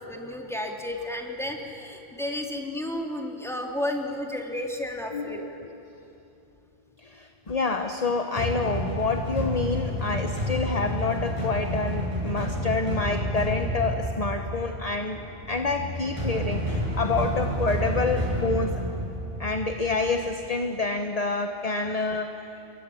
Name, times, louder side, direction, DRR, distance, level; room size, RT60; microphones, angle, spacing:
voice 1, 0.0-5.6, left 1 dB, ahead, 1 dB, 2.6 m, -32 dB
voice 2, 5.1-5.5 7.0-15.2 15.5-18.8 19.4-22.6, left 3 dB, 35° left, 6 dB, 1.1 m, -28 dB
sound 1, 8.4-20.3, equal, 25° right, 7.5 m, -30 dB
28.0 x 22.0 x 8.5 m, 2.8 s
omnidirectional pair, 1.2 m